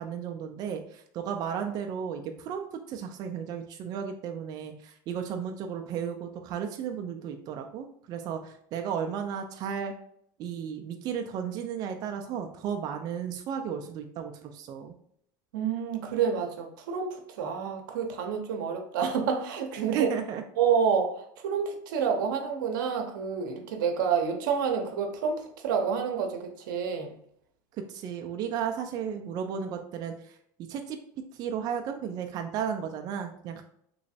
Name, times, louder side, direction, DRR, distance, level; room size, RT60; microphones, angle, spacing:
voice 1, 0.0-9.9 10.4-14.9 19.9-20.4 27.8-30.4 30.7-31.0 31.3-33.6, right 8 dB, 40° right, 4 dB, 0.4 m, -34 dB
voice 2, 15.5-20.1 20.6-27.1, right 6 dB, 80° right, 4 dB, 0.7 m, -28 dB
3.1 x 3.0 x 2.7 m, 0.67 s
supercardioid pair, 130°, 10 cm